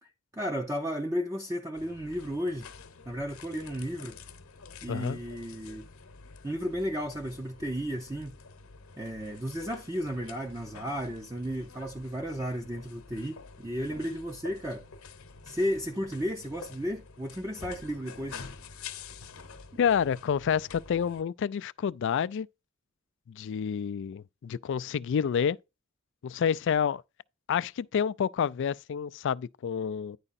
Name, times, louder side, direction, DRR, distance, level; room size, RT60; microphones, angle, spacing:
voice 1, 0.0-2.7 3.1-4.2 4.8-5.9 6.4-8.3 9.0-14.8 15.4-18.4 19.7-19.8, equal, 15° right, 0.6 m, -34 dB
sound 1, 1.8-21.2, left 5 dB, 75° left, 0.9 m, -48 dB
voice 2, 4.9-5.2 19.8-22.5 23.3-25.6 26.2-27.0 27.5-30.2, left 7 dB, 60° left, 0.3 m, -29 dB
9.9 x 4.8 x 4.1 m
head